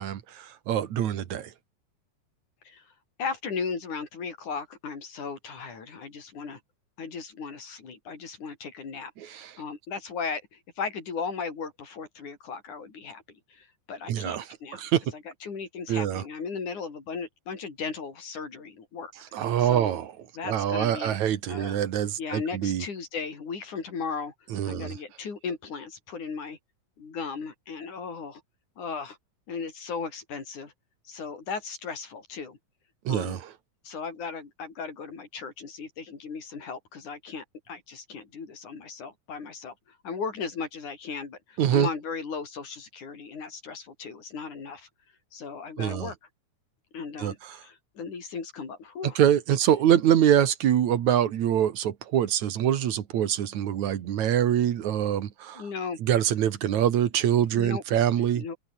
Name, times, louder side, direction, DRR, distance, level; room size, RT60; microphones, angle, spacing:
voice 1, 0.0-1.5 9.2-9.5 14.1-14.4 14.7-15.0 15.9-16.2 19.3-20.1 20.4-22.8 24.5-25.0 33.1-33.4 41.6-41.9 45.8-46.1 47.2-47.3 49.2-55.6 56.0-58.4, right 10 dB, 75° right, 2.9 m, -24 dB
voice 2, 3.2-6.6 7.0-19.1 19.6-20.0 20.4-21.2 21.5-21.8 22.2-24.3 24.6-26.6 27.0-28.4 28.8-29.2 29.5-30.7 31.1-32.6 33.1-33.4 33.8-44.9 45.3-46.2 46.9-49.2 55.6-56.0 57.5-57.8 58.3-58.6, left 5 dB, 85° left, 6.0 m, -36 dB
open air
omnidirectional pair, 3.4 m